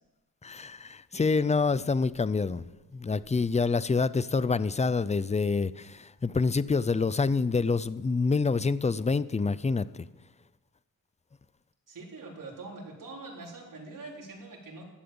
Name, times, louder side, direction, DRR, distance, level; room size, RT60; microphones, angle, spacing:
voice 1, 0.4-2.7 2.9-9.9, left 4 dB, 20° left, 0.4 m, -27 dB
voice 2, 1.1-1.4 11.9-14.9, right 3 dB, 70° right, 3.9 m, -44 dB
15.0 x 11.5 x 7.0 m
wide cardioid pair, 155°, 34 cm